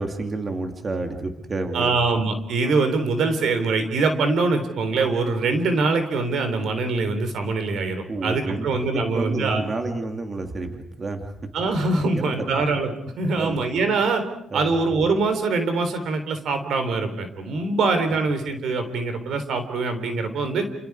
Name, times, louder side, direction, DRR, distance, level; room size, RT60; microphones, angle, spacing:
voice 1, 0.0-1.9 2.6-2.7 8.1-11.3 12.0-12.7 13.2-13.6 14.5-14.8, right 3 dB, 35° right, 4 dB, 2.7 m, -30 dB
voice 2, 1.7-9.6 11.5-14.2 14.5-20.7, right 3 dB, 75° right, 8 dB, 3.6 m, -23 dB
29.5 x 29.0 x 4.8 m, 0.77 s
cardioid pair, 115°, 0 cm